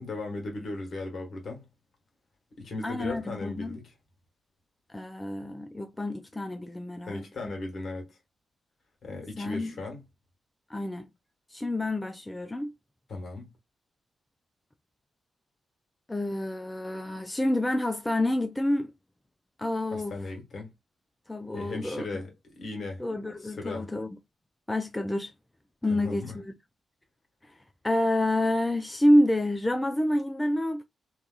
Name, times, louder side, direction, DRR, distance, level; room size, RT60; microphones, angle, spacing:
voice 1, 0.0-1.6 2.6-3.9 7.1-8.2 9.0-10.0 13.1-13.5 19.9-20.7 21.5-22.3 22.6-23.0 23.4-23.9 25.9-26.3, left 2 dB, 60° left, 1.3 m, -37 dB
voice 2, 2.8-3.8 4.9-7.2 9.4-9.7 10.7-11.1 11.5-12.7 16.1-18.9 19.6-20.1 21.3-22.1 23.0-24.1 24.7-25.3 25.8-26.5 27.8-30.8, left 1 dB, 15° left, 0.4 m, -28 dB
2.8 x 2.3 x 2.2 m
hypercardioid pair, 40°, 0 cm